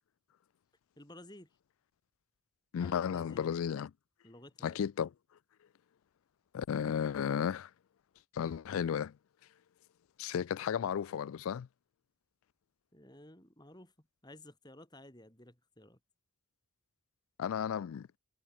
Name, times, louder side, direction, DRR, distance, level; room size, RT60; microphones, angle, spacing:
voice 1, 1.0-1.5 2.8-3.4 4.2-4.8 12.9-16.0, left 1 dB, 20° left, 3.9 m, -54 dB
voice 2, 2.7-3.9 4.6-5.1 6.5-7.7 8.3-9.1 10.2-11.7 17.4-18.1, left 8 dB, 75° left, 0.3 m, -34 dB
head